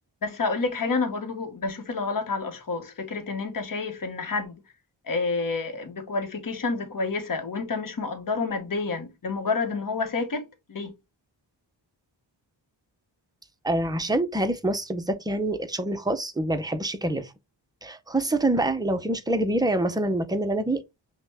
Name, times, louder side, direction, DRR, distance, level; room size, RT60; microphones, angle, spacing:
voice 1, 0.2-4.5 5.1-10.4 10.7-10.9, left 4 dB, 45° left, 1.0 m, -29 dB
voice 2, 13.6-17.3 17.8-20.8, right 1 dB, 10° right, 0.5 m, -26 dB
5.7 x 2.2 x 3.4 m
wide cardioid pair, 115°, 46 cm